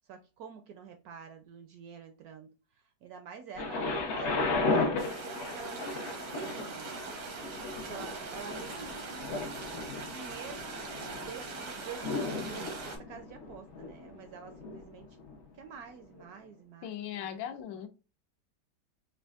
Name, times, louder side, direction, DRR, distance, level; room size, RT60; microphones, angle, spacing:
voice 1, 0.1-6.9 7.8-15.1 15.5-17.8, right 6 dB, 70° right, 0.9 m, -48 dB
Thunder, 3.6-15.4 16.2-16.3, left 3 dB, 65° left, 0.7 m, -35 dB
sound 1, 5.0-13.0, right 4 dB, 85° right, 1.7 m, -42 dB
voice 2, 16.8-17.9, left 10 dB, 85° left, 1.3 m, -38 dB
5.1 x 2.4 x 2.4 m
omnidirectional pair, 2.0 m